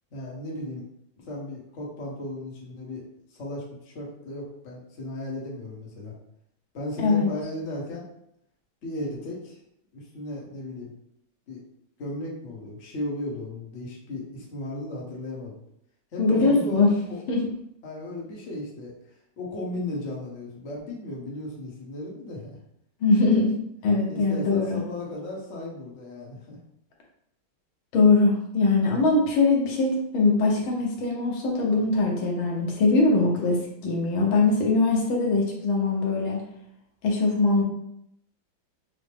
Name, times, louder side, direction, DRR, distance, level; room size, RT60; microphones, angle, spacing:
voice 1, 0.1-0.8 1.2-3.0 3.3-6.1 6.7-8.1 8.8-9.6 9.9-10.9 11.5-11.6 12.0-15.6 16.1-17.2 17.8-18.9 19.4-22.6 24.1-26.6, left 1 dB, 45° left, -3 dB, 1.2 m, -35 dB
voice 2, 7.0-7.3 16.2-16.9 17.3-17.4 23.0-23.5 23.8-24.8 27.9-36.4 37.0-37.6, left 3 dB, 80° left, -1 dB, 1.7 m, -22 dB
5.9 x 2.1 x 3.3 m, 0.73 s
omnidirectional pair, 2.2 m